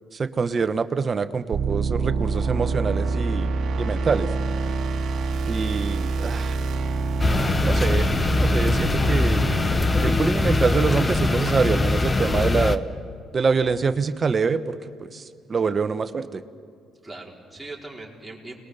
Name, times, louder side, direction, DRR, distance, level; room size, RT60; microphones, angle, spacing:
voice 1, 0.1-3.5 3.8-4.3 5.5-6.6 7.6-8.1 8.4-9.4 10.0-12.9 13.3-15.2 15.5-16.4, right 5 dB, 35° right, 11 dB, 1.1 m, -25 dB
sound 1, 1.5-11.3, right 3 dB, 60° right, 1.6 m, -26 dB
voice 2, 5.4-5.8 17.0-18.5, right 2 dB, 5° right, -3 dB, 4.8 m, -40 dB
sound 2, 7.2-12.8, left 3 dB, 25° left, 1.0 m, -22 dB
29.5 x 21.0 x 6.7 m, 2.3 s
cardioid pair, 85°, 0 cm